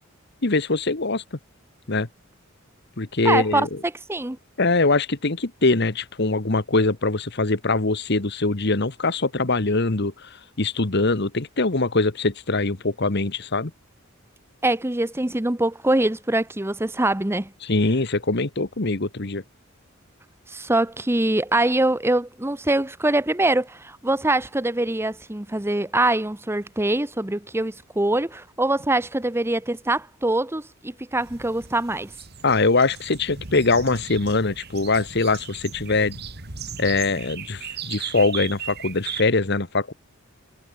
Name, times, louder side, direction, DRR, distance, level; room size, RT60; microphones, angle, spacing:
voice 1, 0.4-1.2 1.9-2.1 3.0-3.7 4.6-10.3 10.6-13.7 17.6-19.4 32.4-36.2 36.8-39.9, left 3 dB, 55° left, 1.5 m, -22 dB
voice 2, 3.2-3.7 4.1-4.4 14.6-17.5 20.5-32.1, right 2 dB, 10° right, 0.9 m, -23 dB
sound 1, 31.2-39.2, right 7 dB, 50° right, 2.3 m, -37 dB
head